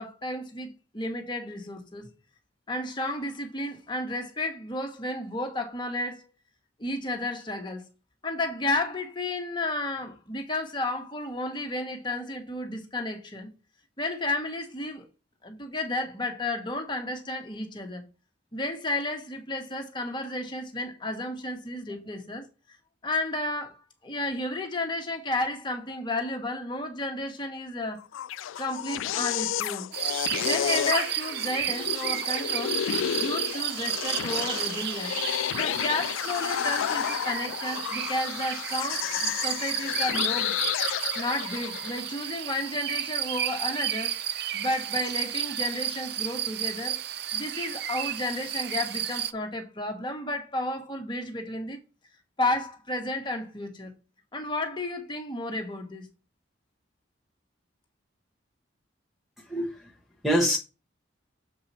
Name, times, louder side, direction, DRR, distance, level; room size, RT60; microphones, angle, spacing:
voice 1, 0.0-2.1 2.7-6.3 6.8-7.8 8.2-13.5 14.0-15.1 15.4-18.0 18.5-22.4 23.0-23.8 24.0-28.0 28.6-29.9 30.4-32.8 33.2-35.2 35.5-40.5 41.1-44.2 44.5-47.0 47.3-51.8 52.4-53.9 54.3-56.1, left 2 dB, 25° left, 1.3 m, -32 dB
sound 1, 28.0-42.1, left 10 dB, 85° left, 0.3 m, -31 dB
sound 2, 29.9-49.3, right 11 dB, 55° right, 0.5 m, -32 dB
voice 2, 59.4-59.9 60.2-60.6, equal, ahead, 1.0 m, -25 dB
7.1 x 4.7 x 4.2 m
head